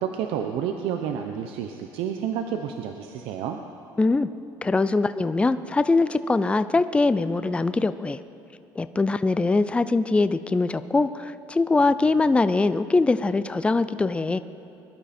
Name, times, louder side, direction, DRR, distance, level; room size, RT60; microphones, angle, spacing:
voice 1, 0.0-3.6, right 8 dB, 75° right, 5 dB, 0.8 m, -30 dB
voice 2, 4.0-4.3 4.6-8.2 8.8-14.4, left 3 dB, 10° left, 13 dB, 0.5 m, -22 dB
21.5 x 11.5 x 4.4 m, 2.8 s
cardioid pair, 110°, 9 cm